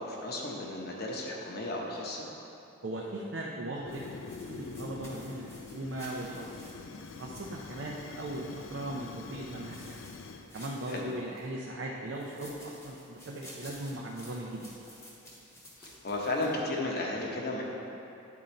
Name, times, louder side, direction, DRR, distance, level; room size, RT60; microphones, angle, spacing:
voice 1, 0.0-2.2 10.9-11.0 15.8-17.6, left 2 dB, 50° left, -1 dB, 0.9 m, -34 dB
voice 2, 2.8-4.1 4.5-6.5 7.1-10.0 10.5-14.7, right 1 dB, 55° right, -3 dB, 0.5 m, -38 dB
Fire, 3.8-10.5, left 4 dB, 65° left, 0.4 m, -45 dB
sound 1, 3.9-8.6 9.4-11.5 12.1-16.5, equal, 15° left, 0.9 m, -53 dB
9.2 x 3.9 x 4.2 m, 2.8 s
head